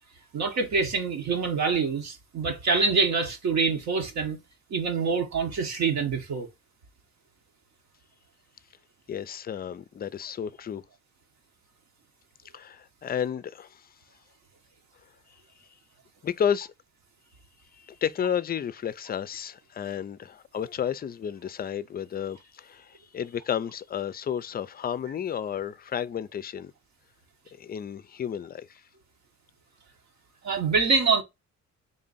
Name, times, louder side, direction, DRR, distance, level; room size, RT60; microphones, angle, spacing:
voice 1, 0.3-4.4 4.7-6.5 30.4-31.2, right 4 dB, 65° right, 1.1 m, -25 dB
voice 2, 9.1-10.8 12.5-13.9 16.2-16.7 17.8-26.7 27.5-28.8, left 8 dB, 30° left, 0.4 m, -32 dB
3.7 x 2.5 x 3.9 m
cardioid pair, 90°, 30 cm